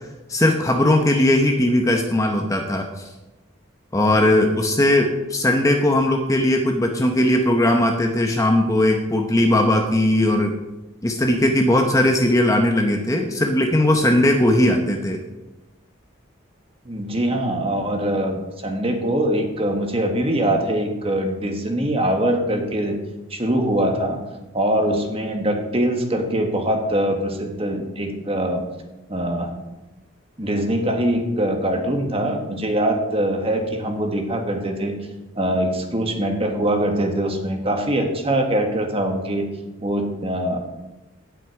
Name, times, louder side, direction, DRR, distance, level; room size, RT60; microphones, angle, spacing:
voice 1, 0.3-3.1 3.9-10.5 11.0-15.2, left 1 dB, 15° left, 3 dB, 0.8 m, -18 dB
voice 2, 16.8-23.0 23.3-24.2 24.5-28.6 29.1-29.5 30.4-35.0 35.3-39.5 39.8-40.6, right 1 dB, 30° right, 3 dB, 1.5 m, -23 dB
17.0 x 6.0 x 4.8 m, 1.0 s
head